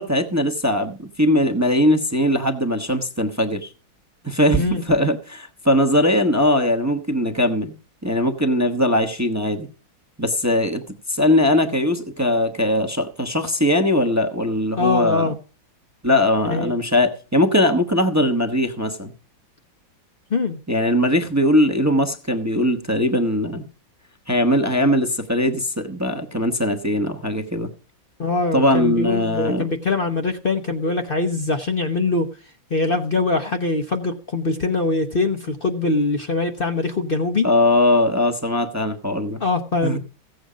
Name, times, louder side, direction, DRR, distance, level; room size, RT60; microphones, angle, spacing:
voice 1, 0.0-3.7 4.2-7.7 8.0-9.7 10.2-10.8 11.1-15.4 16.0-19.1 20.7-23.6 24.3-27.7 28.5-29.7 37.4-39.4 39.8-40.0, left 1 dB, 15° right, 0.6 m, -20 dB
voice 2, 14.8-15.3 16.5-16.7 20.3-20.6 28.2-32.3 32.7-37.4 39.4-40.0, left 3 dB, 50° left, 0.6 m, -22 dB
16.0 x 7.9 x 5.0 m
omnidirectional pair, 2.2 m